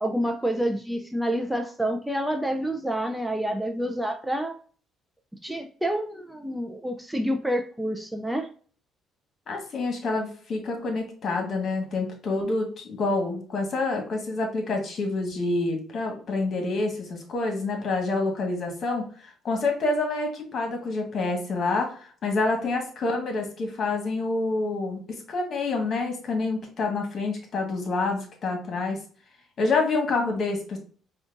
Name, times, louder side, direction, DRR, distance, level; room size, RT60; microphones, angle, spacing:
voice 1, 0.0-4.6 5.4-8.5, right 1 dB, 5° right, 5 dB, 0.5 m, -28 dB
voice 2, 9.5-29.0 29.6-30.8, left 3 dB, 55° left, 2 dB, 1.4 m, -27 dB
5.0 x 2.4 x 2.5 m, 0.43 s
supercardioid pair, 70°, 0 cm